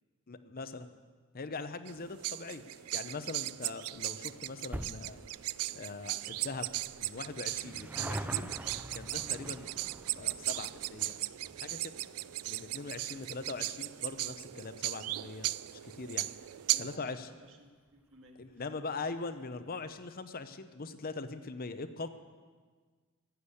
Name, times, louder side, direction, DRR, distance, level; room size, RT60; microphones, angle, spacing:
voice 1, 0.3-0.9 1.3-2.6 2.9-5.3 5.7-6.7 7.0-8.5 8.9-9.7 10.2-11.2 11.6-11.9 12.5-16.3 16.8-17.3 18.4-22.1, left 3 dB, 40° left, 10 dB, 0.8 m, -41 dB
sound 1, 1.9-17.0, right 16 dB, 80° right, 0.4 m, -37 dB
sound 2, 3.9-16.7 17.0-17.1 18.0-18.1 18.3-18.4 18.6-18.7, right 1 dB, 10° right, 0.4 m, -47 dB
voice 2, 16.7-18.7, right 1 dB, 60° right, 2 dB, 1.9 m, -57 dB
15.5 x 8.2 x 8.3 m, 1.5 s
head